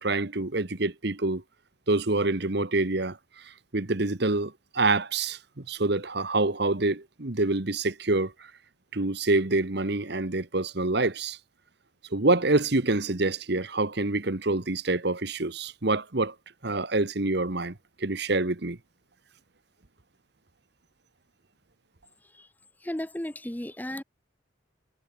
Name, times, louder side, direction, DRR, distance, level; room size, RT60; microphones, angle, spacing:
voice 1, 0.0-1.4 1.9-3.2 3.7-8.3 8.9-11.4 12.1-16.3 16.6-18.8, right 2 dB, 55° right, 1.3 m, -26 dB
voice 2, 22.8-24.0, left 1 dB, 10° left, 0.7 m, -34 dB
head